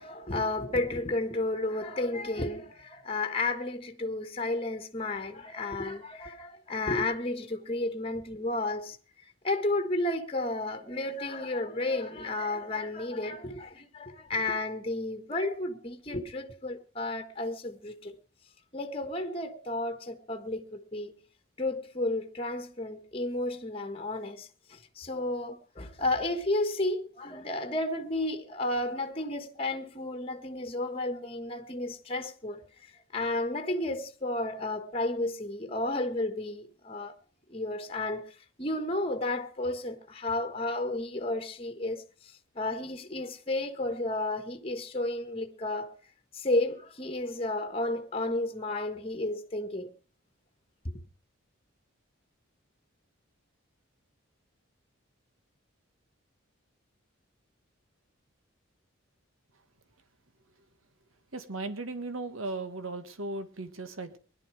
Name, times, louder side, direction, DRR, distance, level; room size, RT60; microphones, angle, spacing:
voice 1, 0.0-9.0 9.4-18.1 18.7-21.1 21.6-37.1 37.5-45.9 46.3-49.9 50.8-51.0, left 2 dB, 25° left, 1.3 m, -32 dB
voice 2, 61.3-64.2, right 2 dB, 75° right, 1.7 m, -37 dB
20.5 x 11.5 x 4.8 m
head